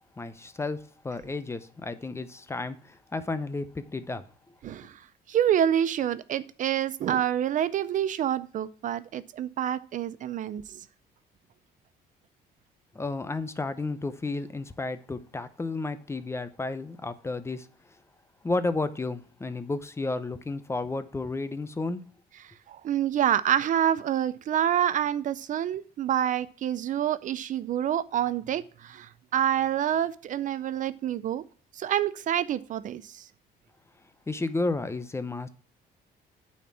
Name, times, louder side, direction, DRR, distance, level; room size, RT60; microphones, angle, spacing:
voice 1, 0.2-4.2 12.9-17.7 18.4-22.0 34.3-35.5, left 3 dB, 15° left, 0.7 m, -32 dB
voice 2, 4.6-5.0 5.3-10.8 22.7-31.4 31.7-33.2, right 10 dB, 50° right, 0.5 m, -27 dB
8.9 x 4.4 x 7.3 m
cardioid pair, 110°, 17 cm